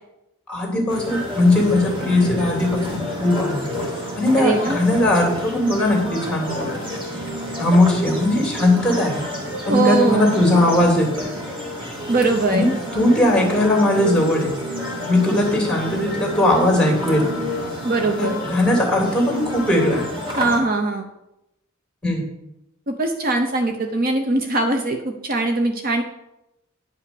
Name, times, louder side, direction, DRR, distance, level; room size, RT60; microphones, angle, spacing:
voice 1, 0.5-3.8 4.1-6.7 7.6-9.2 9.7-11.3 12.5-14.5 15.1-17.3 18.2-20.0 22.0-22.2, left 1 dB, 5° left, 1 dB, 2.8 m, -19 dB
sound 1, 0.9-20.6, equal, 25° right, 2.3 m, -30 dB
voice 2, 4.4-4.8 9.7-10.3 12.1-12.6 17.8-18.4 20.4-21.1 22.9-26.0, right 2 dB, 45° right, 5 dB, 0.8 m, -21 dB
10.5 x 5.7 x 6.9 m, 0.88 s
head